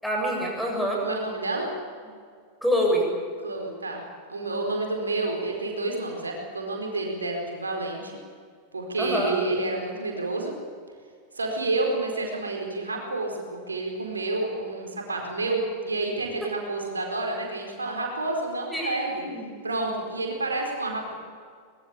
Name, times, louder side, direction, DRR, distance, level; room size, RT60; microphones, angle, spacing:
voice 1, 0.0-1.0 2.6-3.1 9.0-9.3 18.7-19.5, equal, ahead, -1 dB, 7.7 m, -26 dB
voice 2, 1.0-1.7 3.4-4.0 4.3-8.1 8.7-10.5 11.3-19.2 19.6-21.1, right 2 dB, 75° right, 1 dB, 4.6 m, -29 dB
23.5 x 21.5 x 8.5 m, 2.1 s
figure-of-eight pair, 90°, 0 cm